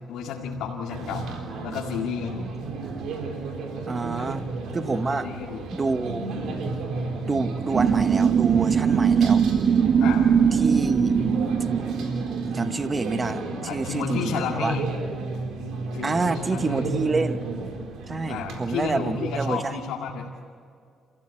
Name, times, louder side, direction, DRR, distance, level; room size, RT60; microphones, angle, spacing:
voice 1, 0.0-2.5 4.1-4.4 5.1-5.7 10.0-10.3 13.6-14.9 15.9-16.9 18.3-20.3, left 6 dB, 90° left, -1 dB, 2.2 m, -32 dB
sound 1, 0.9-19.5, right 3 dB, 80° right, 4.0 m, -33 dB
voice 2, 2.6-3.1 3.9-4.5 4.7-5.3 5.7-6.3 7.3-9.4 10.5-11.2 12.4-14.8 16.0-17.4 18.1-19.8, right 3 dB, 30° right, 10 dB, 1.1 m, -28 dB
sound 2, 7.7-12.7, right 7 dB, 65° right, 0.9 m, -21 dB
29.0 x 15.5 x 8.8 m, 2.3 s
cardioid pair, 90°, 0 cm